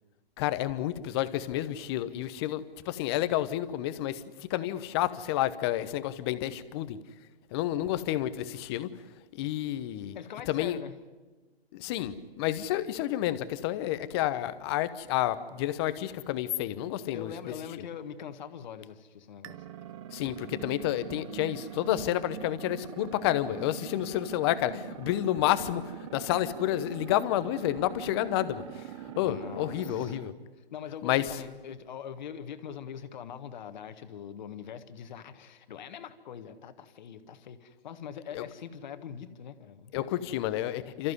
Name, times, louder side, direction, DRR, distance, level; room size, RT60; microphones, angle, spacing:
voice 1, 0.4-4.2 4.5-7.0 7.5-8.9 9.3-10.2 10.5-10.8 11.7-17.3 20.1-25.8 26.1-28.8 29.2-30.3 31.0-31.2 38.3-38.4 39.9-41.1, left 13 dB, 25° left, 13 dB, 0.9 m, -30 dB
voice 2, 10.1-11.0 17.1-19.6 29.2-30.2 30.7-40.1, left 8 dB, 45° left, 10 dB, 1.6 m, -43 dB
sound 1, 19.4-30.3, right 11 dB, 30° right, 0.8 m, -43 dB
29.5 x 14.5 x 9.7 m, 1.3 s
hypercardioid pair, 140°, 31 cm